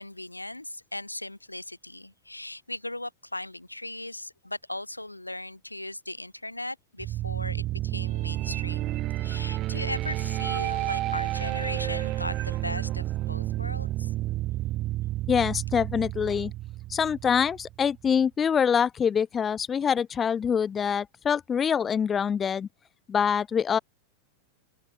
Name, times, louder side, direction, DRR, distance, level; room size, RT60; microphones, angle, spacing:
voice 1, 0.0-14.1, left 1 dB, 85° left, 6.9 m, -38 dB
sound 1, 7.0-17.9, right 15 dB, 35° right, 4.5 m, -30 dB
voice 2, 15.3-16.5 16.9-22.7 23.1-23.8, left 7 dB, 20° left, 0.5 m, -25 dB
figure-of-eight pair, 90°, 0 cm